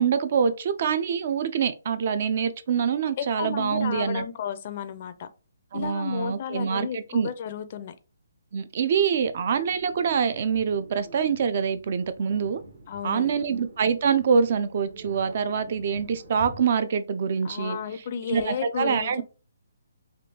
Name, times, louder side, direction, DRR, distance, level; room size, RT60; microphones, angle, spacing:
voice 1, 0.0-4.2 5.7-7.3 8.5-12.6 13.0-17.8 18.3-19.2, right 6 dB, 45° right, 0.3 m, -25 dB
voice 2, 3.2-5.3 5.7-7.9 12.9-13.3 17.4-19.2, left 8 dB, 40° left, 0.4 m, -33 dB
sound 1, 9.3-16.6, right 1 dB, 65° right, 1.5 m, -47 dB
3.5 x 2.3 x 2.7 m
hypercardioid pair, 160°, 0 cm